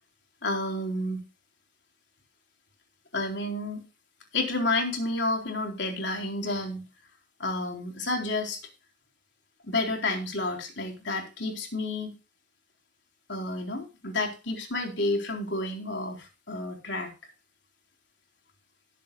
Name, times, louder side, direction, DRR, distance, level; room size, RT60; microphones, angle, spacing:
voice 1, 0.4-1.2 3.1-3.8 4.3-6.8 7.4-8.6 9.6-12.1 13.3-17.1, left 2 dB, 65° left, 3 dB, 3.9 m, -30 dB
18.5 x 8.3 x 2.4 m, 0.29 s
head